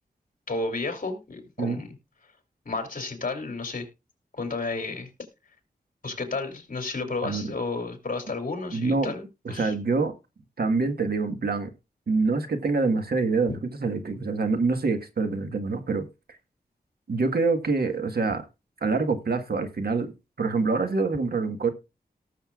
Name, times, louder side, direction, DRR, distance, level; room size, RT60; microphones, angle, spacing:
voice 1, 0.5-1.9 2.6-3.9 4.3-5.1 6.0-9.7 13.5-13.6, left 3 dB, 55° left, 2.9 m, -32 dB
voice 2, 7.2-7.5 8.7-9.1 9.4-10.1 10.6-11.7 12.1-16.0 17.1-18.4 18.8-20.1 20.4-21.7, right 4 dB, 70° right, 1.5 m, -25 dB
18.5 x 6.6 x 2.4 m
wide cardioid pair, 115°, 16 cm